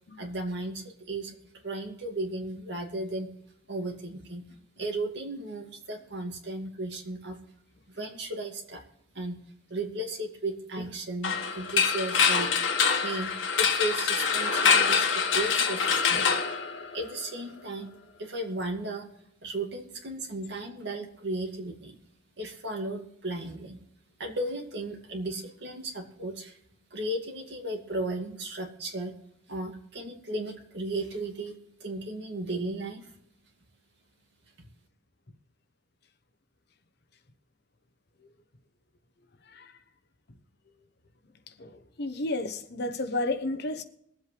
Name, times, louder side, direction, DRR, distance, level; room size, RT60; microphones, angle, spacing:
voice 1, 0.2-1.4 1.6-3.3 3.7-4.4 4.8-7.4 7.9-8.8 9.1-9.4 9.7-12.5 13.0-16.3 16.9-17.9 18.2-19.1 19.4-22.0 22.4-23.8 24.2-26.6 26.9-29.1 29.5-31.5 31.8-33.1, right 2 dB, 60° right, 2.3 m, -35 dB
sound 1, 11.2-17.2, left 6 dB, 85° left, 1.5 m, -25 dB
voice 2, 39.5-39.8 41.5-43.8, left 2 dB, 55° left, 1.0 m, -32 dB
22.5 x 8.0 x 3.3 m
head